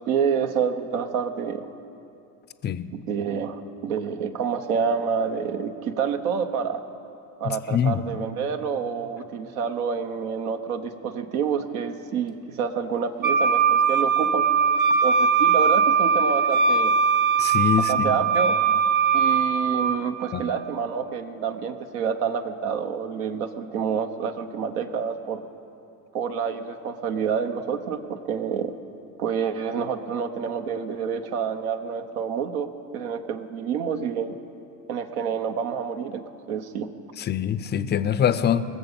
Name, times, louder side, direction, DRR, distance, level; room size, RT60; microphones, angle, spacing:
voice 1, 0.0-1.7 2.9-6.8 7.4-14.5 15.0-16.9 17.9-18.6 19.1-25.5 26.1-28.7 29.2-34.4 34.9-36.9, right 7 dB, 70° right, 7 dB, 1.0 m, -28 dB
voice 2, 7.4-8.0 17.4-18.2 20.3-20.5 37.2-38.7, left 9 dB, 20° left, 13 dB, 0.5 m, -24 dB
Wind instrument woodwind instrument, 13.2-20.0, right 6 dB, 40° right, 1.3 m, -20 dB
20.5 x 7.1 x 7.2 m, 2.7 s
hypercardioid pair, 70°, 48 cm